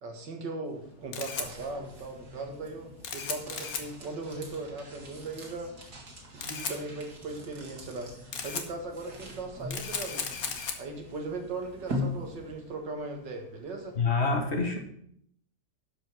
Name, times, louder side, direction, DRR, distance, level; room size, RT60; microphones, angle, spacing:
voice 1, 0.0-5.7 6.3-10.3 10.8-14.0, right 3 dB, 85° right, 3 dB, 2.4 m, -38 dB
sound 1, 0.6-12.8, left 1 dB, 65° right, 2.6 m, -42 dB
Camera, 0.7-14.1, left 6 dB, 55° left, 1.5 m, -40 dB
voice 2, 14.0-14.8, left 4 dB, 40° left, 4 dB, 1.5 m, -26 dB
12.0 x 5.3 x 6.1 m, 0.67 s
omnidirectional pair, 1.9 m